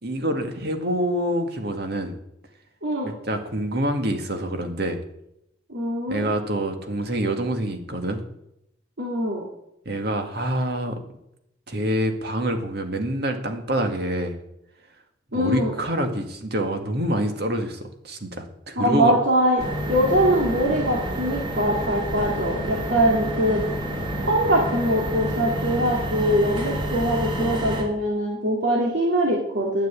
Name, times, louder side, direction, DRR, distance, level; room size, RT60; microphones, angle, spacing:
voice 1, 0.0-2.2 3.3-5.0 6.1-8.2 9.9-11.0 11.7-14.4 15.3-19.1, right 1 dB, 60° right, 5 dB, 2.0 m, -26 dB
voice 2, 2.8-3.1 5.7-6.3 9.0-9.4 15.3-15.8 18.8-19.6 19.9-23.6 24.2-29.9, equal, 80° right, -3 dB, 2.6 m, -22 dB
sound 1, 19.6-27.8, right 1 dB, 25° right, 3.3 m, -29 dB
10.5 x 9.2 x 8.6 m, 0.80 s
head